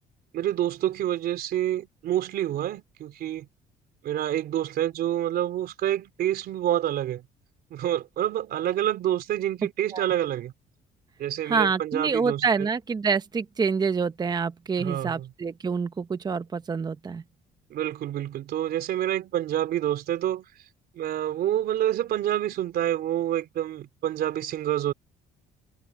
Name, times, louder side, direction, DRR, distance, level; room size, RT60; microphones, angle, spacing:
voice 1, 0.3-3.5 4.0-7.2 7.7-10.5 11.2-12.7 14.8-15.3 17.7-20.5 21.0-24.9, right 12 dB, 65° right, 3.6 m, -27 dB
voice 2, 11.5-17.2, right 5 dB, 25° right, 0.8 m, -26 dB
cardioid pair, 110°, 17 cm